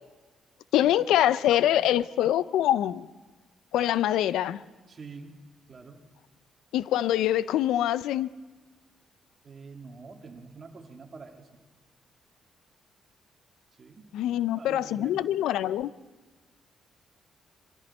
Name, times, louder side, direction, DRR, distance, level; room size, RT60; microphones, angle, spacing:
voice 1, 0.7-3.1 3.7-4.6 6.7-8.3 14.1-15.9, left 12 dB, 85° left, 17 dB, 0.4 m, -24 dB
voice 2, 4.9-5.4 5.7-6.0 9.4-11.5 13.8-15.2, right 4 dB, 40° right, 3 dB, 2.1 m, -46 dB
23.0 x 14.0 x 4.3 m, 1.3 s
cardioid pair, 90°, 0 cm